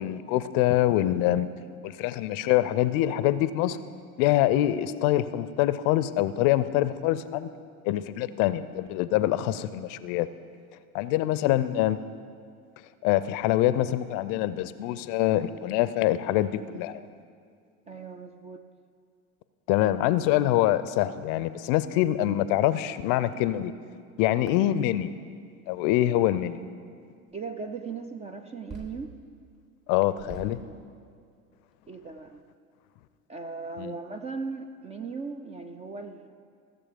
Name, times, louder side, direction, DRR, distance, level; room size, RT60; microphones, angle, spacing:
voice 1, 0.0-1.5 1.8-3.8 4.2-7.5 7.8-10.3 10.9-12.0 13.0-17.1 19.7-23.7 24.2-25.1 25.7-26.6 29.9-30.6 33.8-33.9, left 14 dB, 45° left, 15 dB, 0.5 m, -25 dB
voice 2, 17.9-18.6 27.3-29.1 31.9-32.4 33.3-36.3, right 4 dB, 15° right, 6 dB, 0.3 m, -38 dB
sound 1, 24.5-24.7 25.9-26.0 27.3-27.5 28.7-29.2 29.5-29.6 30.2-30.7 31.3-31.4 31.7-31.8 32.1-32.4, right 4 dB, 35° right, 2.0 m, -44 dB
15.0 x 6.9 x 5.1 m, 2.2 s
hypercardioid pair, 80°, 43 cm